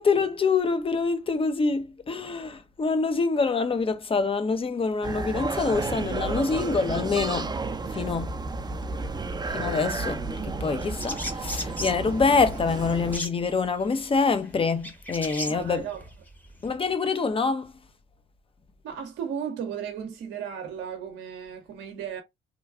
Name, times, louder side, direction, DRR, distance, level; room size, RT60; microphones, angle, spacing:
voice 1, 0.0-7.5 7.8-8.3 9.5-15.9 16.6-17.7, left 4 dB, 30° left, 0.6 m, -26 dB
sound 1, 5.0-13.2, right 3 dB, 20° right, 0.5 m, -32 dB
sound 2, 10.8-16.7, left 1 dB, 10° left, 0.9 m, -37 dB
voice 2, 15.5-16.0 18.8-22.2, right 8 dB, 70° right, 0.7 m, -35 dB
3.0 x 2.3 x 2.4 m
hypercardioid pair, 55°, 19 cm